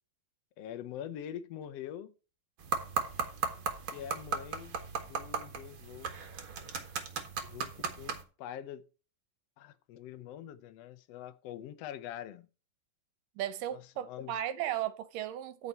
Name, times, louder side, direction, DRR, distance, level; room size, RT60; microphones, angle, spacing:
voice 1, 0.6-2.1 3.9-4.8 5.0-6.1 7.4-8.8 9.6-12.5 13.7-14.4, left 10 dB, 85° left, 1.4 m, -44 dB
sound 1, 2.6-8.2, right 6 dB, 45° right, 1.8 m, -37 dB
voice 2, 13.4-15.7, right 12 dB, 75° right, 2.3 m, -35 dB
13.5 x 5.7 x 4.3 m
omnidirectional pair, 4.1 m